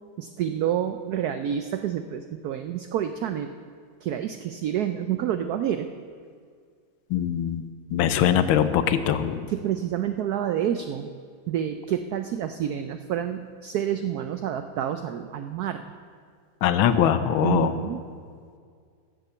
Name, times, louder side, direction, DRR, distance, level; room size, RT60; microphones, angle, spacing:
voice 1, 0.2-3.5 4.0-5.9 9.5-11.1 11.5-15.9 17.4-18.0, right 10 dB, 85° right, 9 dB, 0.8 m, -28 dB
voice 2, 7.1-7.6 7.9-9.5 16.6-17.8, left 9 dB, 80° left, 11 dB, 1.5 m, -22 dB
14.0 x 7.5 x 6.9 m, 2.1 s
omnidirectional pair, 2.2 m